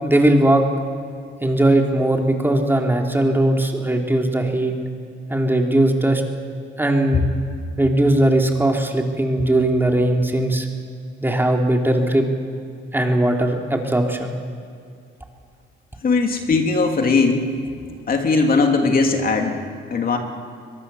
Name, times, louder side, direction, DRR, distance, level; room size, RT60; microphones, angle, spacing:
voice 1, 0.0-0.6 1.4-4.7 5.3-6.2 6.8-7.2 7.8-10.7 11.2-12.2 12.9-14.3, right 1 dB, 10° right, 1 dB, 3.2 m, -19 dB
voice 2, 16.0-17.5 18.1-19.6 19.9-20.2, left 4 dB, 45° left, 3 dB, 2.9 m, -19 dB
23.0 x 22.5 x 7.0 m, 2.4 s
cardioid pair, 90°, 20 cm